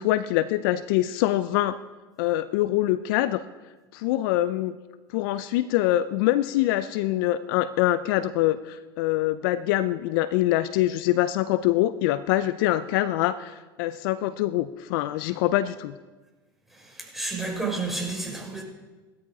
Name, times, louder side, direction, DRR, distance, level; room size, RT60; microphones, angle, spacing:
voice 1, 0.0-1.8 2.2-3.5 3.9-4.8 5.1-16.0, left 14 dB, 65° left, 0.6 m, -24 dB
voice 2, 16.7-18.6, right 3 dB, ahead, 5.4 m, -31 dB
16.5 x 13.0 x 5.0 m
hypercardioid pair, 85°, 12 cm